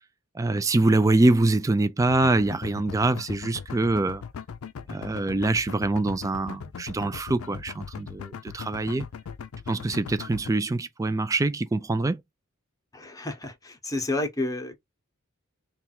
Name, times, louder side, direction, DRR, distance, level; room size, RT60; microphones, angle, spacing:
voice 1, 0.4-4.2 4.9-9.0 9.7-12.2, right 2 dB, 15° right, 0.3 m, -24 dB
sound 1, 2.0-10.5, left 6 dB, 80° left, 0.4 m, -39 dB
voice 2, 12.9-14.8, left 2 dB, 15° left, 0.9 m, -30 dB
3.4 x 2.4 x 4.2 m
head